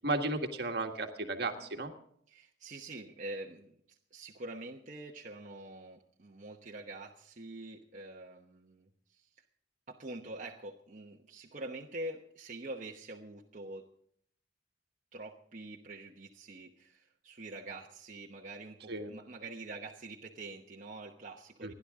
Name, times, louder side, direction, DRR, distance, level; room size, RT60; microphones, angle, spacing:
voice 1, 0.0-1.9 18.9-19.1 21.6-21.7, right 2 dB, 60° right, 5 dB, 1.6 m, -34 dB
voice 2, 2.3-9.4 9.9-13.9 15.1-21.7, right 2 dB, 45° right, -1 dB, 1.1 m, -45 dB
28.5 x 11.0 x 3.7 m, 0.65 s
head